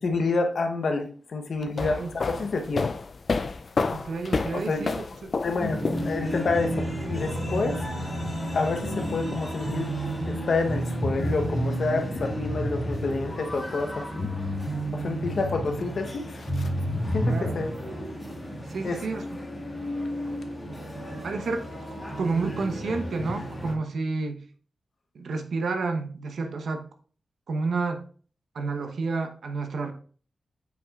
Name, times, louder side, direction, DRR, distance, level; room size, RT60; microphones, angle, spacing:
voice 1, 0.0-2.0 2.2-2.9 4.5-4.8 5.4-7.8 8.5-9.9 10.3-14.3 14.9-16.7 17.1-17.7 18.8-19.0, left 3 dB, 55° left, 5 dB, 0.9 m, -28 dB
sound 1, 1.6-6.5, left 4 dB, 40° left, 0.3 m, -29 dB
voice 2, 1.6-2.1 3.9-5.3 17.2-17.6 18.7-19.2 21.2-21.7 22.2-24.4 25.1-26.9 27.5-28.0 28.5-29.9, right 4 dB, 75° right, 6 dB, 0.9 m, -30 dB
sound 2, 5.6-23.7, equal, 20° left, 1.6 m, -31 dB
7.6 x 5.8 x 2.4 m, 0.43 s
wide cardioid pair, 175°, 0 cm